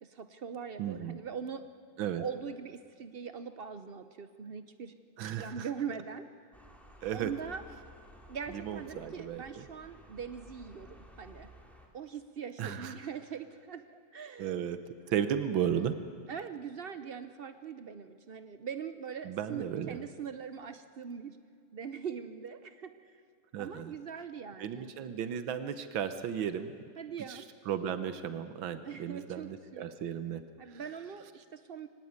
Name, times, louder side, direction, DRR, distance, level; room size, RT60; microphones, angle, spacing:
voice 1, 0.0-1.7 2.2-4.9 5.4-6.5 7.1-7.6 8.3-11.5 11.9-13.9 14.1-14.5 16.3-21.4 21.7-23.2 23.6-25.0 27.0-27.5 28.8-29.8 30.6-31.9, right 7 dB, 70° right, 10 dB, 0.5 m, -42 dB
voice 2, 0.8-1.2 2.0-2.2 5.2-5.7 7.0-7.3 8.5-9.6 12.6-12.9 14.4-14.8 15.1-16.0 19.3-20.0 23.5-23.9 24.6-26.7 27.3-30.4 30.7-30.8, right 9 dB, 90° right, 11 dB, 1.8 m, -34 dB
sound 1, 6.5-11.9, equal, ahead, 2.3 m, -55 dB
23.5 x 17.0 x 9.6 m, 2.3 s
omnidirectional pair, 2.1 m